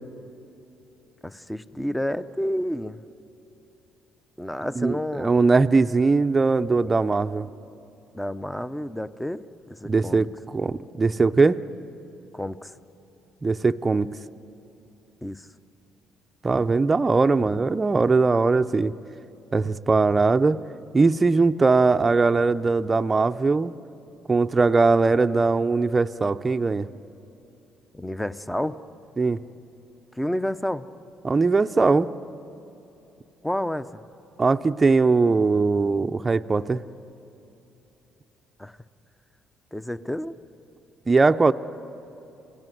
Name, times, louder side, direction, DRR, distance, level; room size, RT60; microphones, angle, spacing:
voice 1, 1.2-3.0 4.4-5.3 8.1-9.4 9.7-10.3 12.3-12.7 15.2-15.5 27.9-28.8 30.2-30.9 33.4-34.0 38.6-38.8 39.7-40.4, left 1 dB, 5° left, 13 dB, 0.8 m, -30 dB
voice 2, 4.8-7.5 9.8-11.6 13.4-14.1 16.4-18.9 19.5-20.6 20.9-23.7 24.3-26.9 29.2-29.4 31.2-32.1 34.4-36.8 41.1-41.5, right 3 dB, 25° right, 8 dB, 0.6 m, -20 dB
28.5 x 18.0 x 9.3 m, 2.9 s
supercardioid pair, 80°, 0 cm